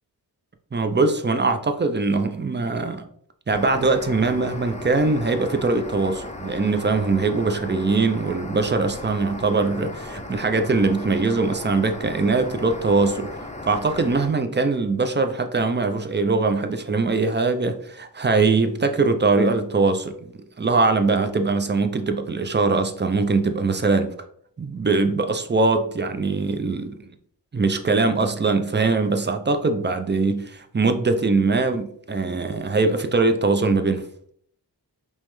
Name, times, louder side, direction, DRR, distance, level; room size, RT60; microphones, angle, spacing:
voice 1, 0.7-3.1 3.5-13.3 13.6-20.3 20.6-24.1 24.6-27.0 27.5-34.0, right 3 dB, 25° right, 0.4 m, -22 dB
sound 1, 3.5-14.3, left 2 dB, 15° left, 0.6 m, -36 dB
5.4 x 2.1 x 3.1 m
wide cardioid pair, 40°, 42 cm